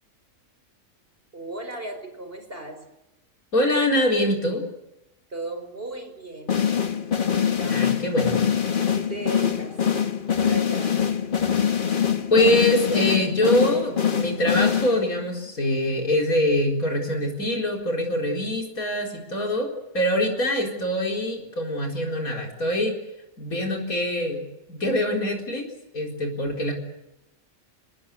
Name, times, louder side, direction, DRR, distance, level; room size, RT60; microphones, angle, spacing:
voice 1, 1.3-2.8 5.3-6.6 7.3-7.9 8.8-10.1 10.4-10.9, right 2 dB, 40° right, 7 dB, 5.2 m, -36 dB
voice 2, 3.5-4.6 7.6-8.4 12.3-23.0 23.4-24.4 24.7-25.7 25.9-26.7, left 1 dB, 90° left, 1 dB, 4.7 m, -24 dB
sound 1, 6.5-15.3, left 8 dB, 40° left, 1.3 m, -24 dB
27.5 x 20.0 x 8.4 m, 0.91 s
omnidirectional pair, 1.5 m